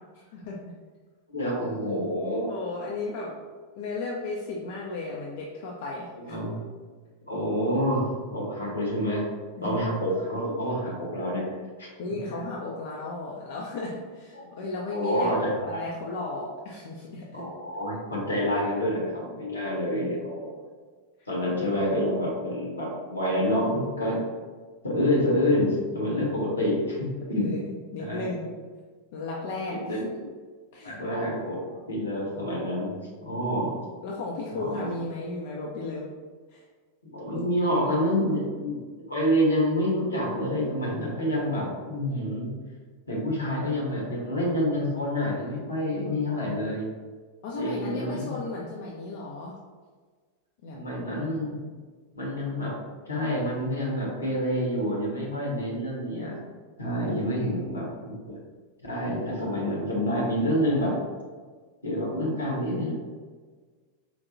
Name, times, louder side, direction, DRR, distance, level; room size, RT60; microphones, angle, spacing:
voice 1, 0.1-0.6 2.5-3.4 3.8-6.4 9.6-9.9 12.0-15.4 15.6-17.4 21.2-21.3 27.4-28.5 29.1-30.3 30.7-31.0 34.0-36.1 36.5-36.6 37.3-37.4 45.9-46.5 47.4-49.5 50.6-50.8 57.2-58.0, left 2 dB, 55° left, -3 dB, 0.5 m, -35 dB
voice 2, 1.3-2.5 6.2-6.5 7.3-9.2 9.6-11.5 11.8-11.9 14.3-14.5 14.9-15.8 17.3-20.5 21.3-24.2 24.8-27.5 28.0-28.2 29.7-30.1 30.8-31.6 31.9-32.9 33.2-33.8 34.5-34.9 37.1-42.5 43.1-46.9 47.6-48.2 50.7-51.5 52.1-52.8 53.0-56.3 56.8-58.3 58.8-60.9 61.8-62.9, equal, 75° left, -3 dB, 1.2 m, -27 dB
4.5 x 2.7 x 2.6 m, 1.5 s
figure-of-eight pair, 90°, 0 cm